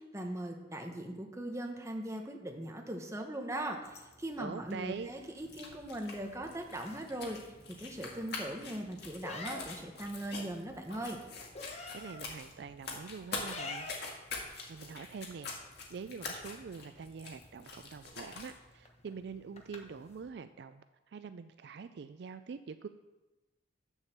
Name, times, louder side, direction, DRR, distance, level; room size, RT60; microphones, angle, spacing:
voice 1, 0.0-7.4 7.7-11.2, right 1 dB, 15° right, 2 dB, 1.1 m, -40 dB
sound 1, 3.8-20.3, left 3 dB, 35° left, 1.0 m, -52 dB
voice 2, 4.4-5.1 11.9-13.9 14.7-22.9, right 5 dB, 60° right, 11 dB, 0.3 m, -45 dB
sound 2, 5.4-18.6, left 3 dB, 55° left, 1.9 m, -45 dB
8.3 x 7.2 x 6.7 m, 1.1 s
head